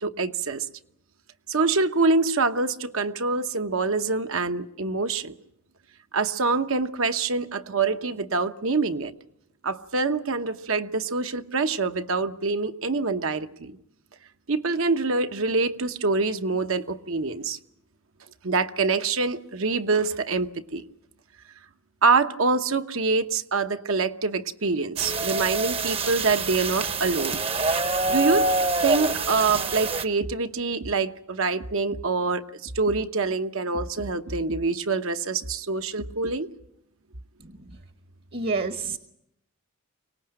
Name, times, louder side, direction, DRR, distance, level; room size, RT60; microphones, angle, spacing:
voice 1, 0.0-0.7 1.5-5.3 6.1-9.1 9.6-13.8 14.5-17.6 18.4-20.8 22.0-27.4 28.1-28.5 28.8-36.5, right 4 dB, 70° right, 8 dB, 1.0 m, -25 dB
sound 1, 25.0-30.0, right 3 dB, 25° right, 0.8 m, -26 dB
voice 2, 37.4-37.8 38.3-39.0, right 4 dB, 45° right, 9 dB, 1.1 m, -29 dB
24.0 x 18.5 x 8.8 m, 0.79 s
head